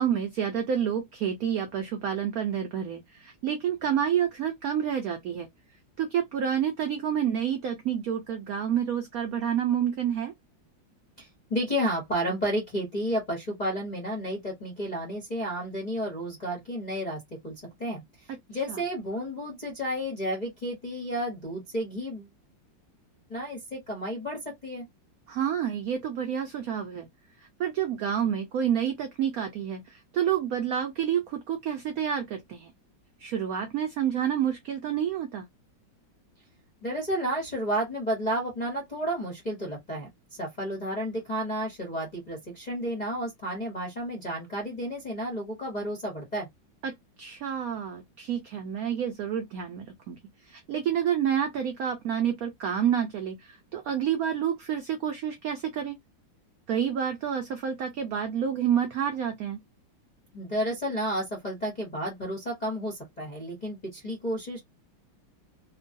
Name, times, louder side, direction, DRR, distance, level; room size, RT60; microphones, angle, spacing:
voice 1, 0.0-5.5 6.0-10.3 18.7-18.8 25.3-27.1 27.6-32.7 33.2-35.5 46.8-46.9 47.2-50.2 50.5-56.0 56.7-59.6, right 9 dB, 85° right, 0.7 m, -29 dB
voice 2, 11.2-17.5 17.8-22.3 23.3-24.8 36.8-40.1 40.4-46.5 60.3-64.6, equal, 45° left, 0.5 m, -32 dB
3.0 x 2.2 x 2.5 m
omnidirectional pair, 2.1 m